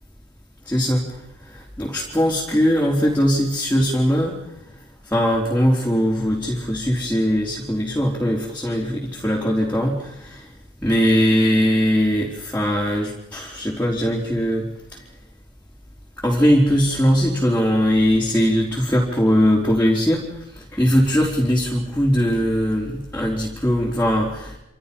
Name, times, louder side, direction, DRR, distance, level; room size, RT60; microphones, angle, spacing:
voice 1, 0.7-1.1 1.8-4.3 5.1-10.4 10.8-14.7 16.2-20.2 20.7-24.5, equal, 10° left, -3 dB, 4.2 m, -20 dB
29.5 x 27.5 x 5.6 m, 0.88 s
head